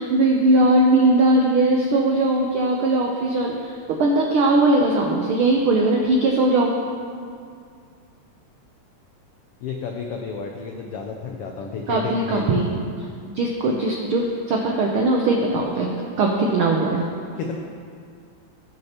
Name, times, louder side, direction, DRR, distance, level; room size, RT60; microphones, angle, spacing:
voice 1, 0.0-6.8 11.9-13.1 13.3-15.9 16.2-17.0, right 2 dB, 80° right, 0 dB, 1.2 m, -20 dB
voice 2, 9.6-12.5 17.4-17.6, left 5 dB, 90° left, 2 dB, 1.3 m, -31 dB
19.0 x 6.4 x 2.9 m, 2.3 s
omnidirectional pair, 3.4 m